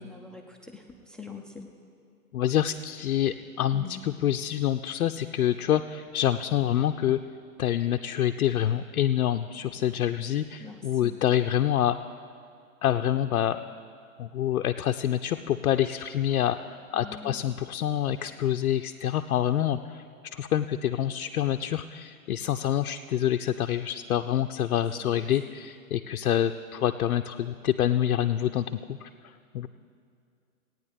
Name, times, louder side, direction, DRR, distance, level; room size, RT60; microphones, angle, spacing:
voice 1, 0.0-1.7 3.7-4.0 10.6-11.2 16.9-17.4 24.9-25.1, left 5 dB, ahead, 3 dB, 0.5 m, -44 dB
voice 2, 2.3-7.2 7.6-12.0 12.8-13.6 14.2-29.7, left 11 dB, 80° left, 6 dB, 0.6 m, -27 dB
16.5 x 9.4 x 5.2 m, 2.4 s
hypercardioid pair, 115°, 42 cm